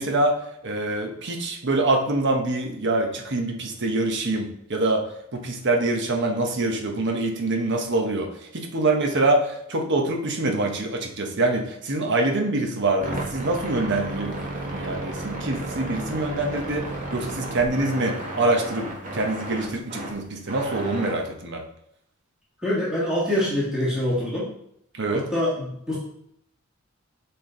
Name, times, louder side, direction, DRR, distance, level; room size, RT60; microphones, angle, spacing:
voice 1, 0.0-5.1 5.3-21.6 24.9-25.3, right 2 dB, 55° right, 2 dB, 1.0 m, -25 dB
sound 1, 13.0-21.2, right 2 dB, 40° right, 1.4 m, -33 dB
voice 2, 22.6-24.5 25.1-26.0, left 1 dB, 5° right, -9 dB, 1.8 m, -25 dB
7.1 x 4.5 x 3.8 m, 0.74 s
head